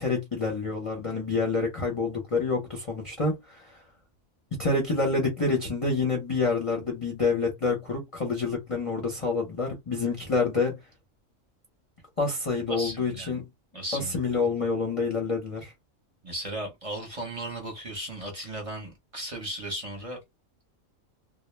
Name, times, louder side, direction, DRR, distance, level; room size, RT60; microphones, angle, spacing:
voice 1, 0.0-3.8 4.5-10.8 12.2-13.4 13.9-15.7, left 3 dB, 35° left, 0.6 m, -27 dB
voice 2, 12.7-13.4 13.7-14.3 16.2-20.2, right 1 dB, 35° right, 0.7 m, -36 dB
2.1 x 2.0 x 3.1 m
omnidirectional pair, 1.3 m